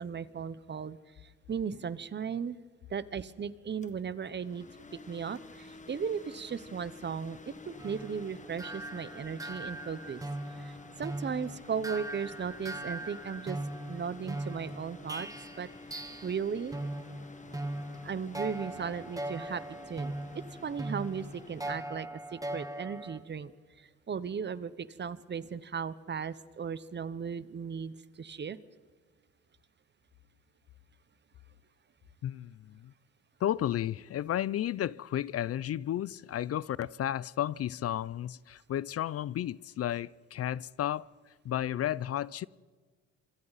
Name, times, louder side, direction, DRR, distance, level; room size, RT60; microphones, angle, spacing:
voice 1, 0.0-2.6 2.9-4.8 5.1-10.2 10.5-13.6 13.9-15.3 15.6-16.8 18.0-23.5 23.8-28.6, right 6 dB, 35° right, 1.0 m, -37 dB
sound 1, 3.6-21.8, left 3 dB, 25° left, 1.7 m, -51 dB
sound 2, 7.7-16.4 16.7-23.2, right 1 dB, 10° right, 1.7 m, -40 dB
voice 2, 32.2-32.9 33.4-42.5, left 11 dB, 50° left, 0.5 m, -33 dB
26.0 x 24.5 x 4.1 m
cardioid pair, 90°, 30 cm